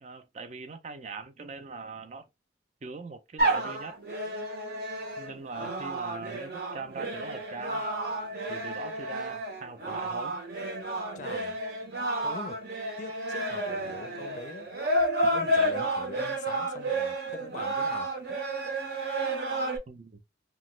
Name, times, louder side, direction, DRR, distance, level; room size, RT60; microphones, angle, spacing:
voice 1, 0.0-2.3 2.8-4.0 5.2-7.8 8.5-10.3 19.9-20.2, right 4 dB, 40° right, 0.4 m, -41 dB
sound 1, 3.4-19.8, right 1 dB, 60° right, 0.8 m, -31 dB
voice 2, 11.2-11.6 12.2-12.6 13.0-14.7 15.2-18.1, left 4 dB, 40° left, 0.4 m, -43 dB
3.0 x 2.1 x 3.0 m
head